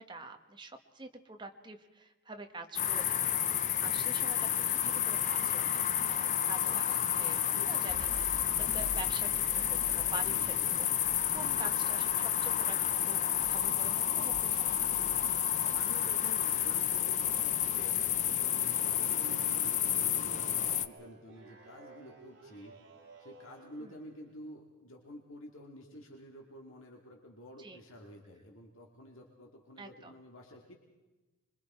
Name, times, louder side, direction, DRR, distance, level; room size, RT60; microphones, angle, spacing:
voice 1, 0.0-10.9 11.3-12.8 13.1-13.2 13.5-14.9 18.6-18.9 23.8-24.0 27.6-27.8 29.8-30.1, right 2 dB, 20° right, 5 dB, 1.3 m, -46 dB
sound 1, 2.8-20.9, left 10 dB, 35° left, 0.5 m, -30 dB
voice 2, 7.5-7.8 10.2-10.7 11.4-11.7 15.5-30.7, equal, 70° left, 1 dB, 2.3 m, -51 dB
sound 2, 7.9-18.3, right 1 dB, 70° right, 1.2 m, -49 dB
sound 3, 19.0-24.3, right 3 dB, 55° right, 3.4 m, -53 dB
26.0 x 23.0 x 4.4 m, 1.2 s
head